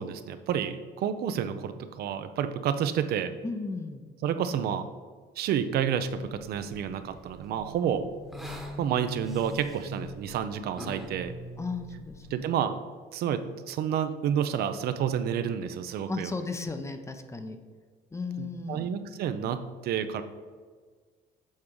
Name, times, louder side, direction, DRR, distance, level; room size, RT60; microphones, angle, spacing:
voice 1, 0.0-3.3 4.2-4.9 5.4-8.0 8.8-11.3 12.3-12.8 13.1-16.3 18.4-20.2, right 8 dB, 65° right, 10 dB, 0.5 m, -30 dB
voice 2, 3.4-4.0 11.6-12.6 16.1-17.6 18.1-18.9, left 4 dB, 15° left, 7 dB, 0.6 m, -35 dB
sound 1, 6.1-12.4, right 1 dB, ahead, 1.1 m, -43 dB
7.4 x 3.6 x 4.7 m, 1.5 s
cardioid pair, 110°, 17 cm